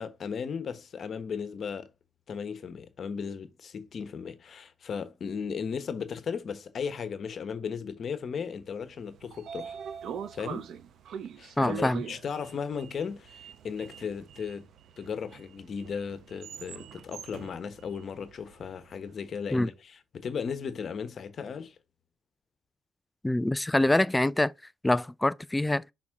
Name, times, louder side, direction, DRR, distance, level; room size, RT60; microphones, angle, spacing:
voice 1, 0.0-1.9 2.3-9.8 10.3-10.7 11.4-14.7 15.0-21.7, left 6 dB, 50° left, 1.1 m, -36 dB
Sliding door, 8.9-19.0, right 8 dB, 70° right, 0.7 m, -43 dB
voice 2, 11.6-12.0 19.5-19.7 23.2-24.5 24.8-25.8, left 1 dB, 10° left, 0.4 m, -25 dB
6.1 x 4.2 x 3.7 m
cardioid pair, 90°, 0 cm